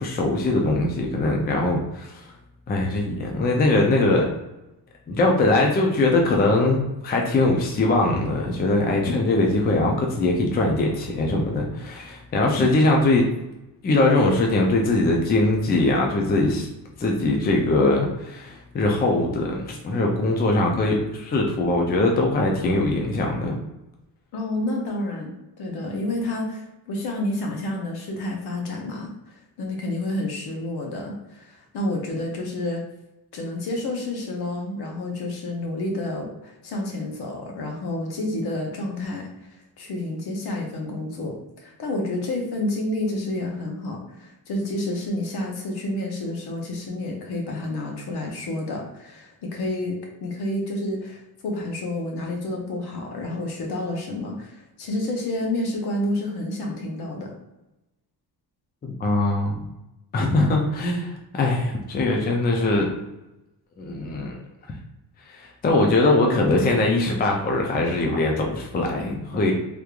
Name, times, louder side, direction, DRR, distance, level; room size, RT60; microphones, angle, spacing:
voice 1, 0.0-2.3 2.7-4.3 5.1-13.3 13.8-16.7 17.0-23.6 58.8-59.6 60.1-62.9 63.8-64.4 65.3-69.5, left 2 dB, 25° left, 0 dB, 0.4 m, -21 dB
voice 2, 24.3-32.8 33.3-39.3 39.8-57.3, left 1 dB, 65° left, 1 dB, 1.0 m, -29 dB
3.5 x 3.1 x 2.4 m, 0.95 s
cardioid pair, 155°, 41 cm